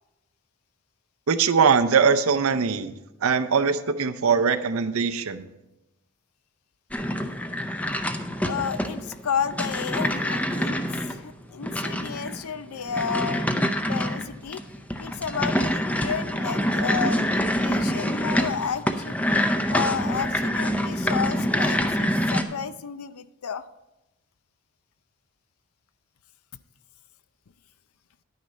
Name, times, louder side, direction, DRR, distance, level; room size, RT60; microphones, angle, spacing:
voice 1, 1.3-2.9 3.2-5.4, right 6 dB, 75° right, 12 dB, 0.6 m, -21 dB
sound 1, 6.9-22.4, equal, 5° left, 0.5 m, -26 dB
voice 2, 8.4-13.5 13.9-14.6 15.0-19.2 19.7-23.7, left 7 dB, 85° left, 14 dB, 0.5 m, -32 dB
10.5 x 9.5 x 4.1 m, 0.97 s
head